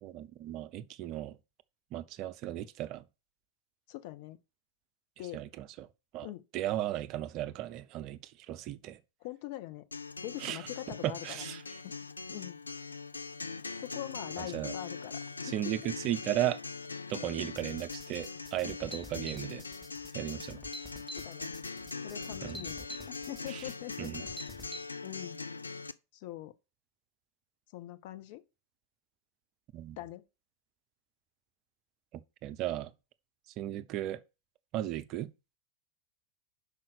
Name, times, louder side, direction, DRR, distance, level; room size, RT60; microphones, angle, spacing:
voice 1, 0.0-1.4 1.9-3.0 5.3-5.9 6.1-6.3 6.5-9.0 10.4-10.6 11.0-11.6 14.4-14.7 15.4-16.6 17.1-19.6 20.1-20.6 22.4-22.6 23.5-23.6 24.0-24.2 29.7-30.0 32.1-32.9 33.6-34.2 34.7-35.3, right 13 dB, 40° right, 0.6 m, -36 dB
voice 2, 3.9-4.4 5.2-5.4 6.2-6.4 9.2-9.9 10.2-11.5 11.8-12.0 12.3-12.6 13.8-15.5 21.1-21.5 22.0-24.3 25.0-25.4 26.1-26.6 27.7-28.4 30.0-30.2, left 15 dB, 45° left, 0.7 m, -43 dB
Acoustic guitar, 9.9-25.9, left 4 dB, 80° left, 0.4 m, -42 dB
sound 1, 17.6-24.8, equal, 10° left, 1.6 m, -48 dB
5.6 x 5.0 x 6.6 m
figure-of-eight pair, 90°, 0 cm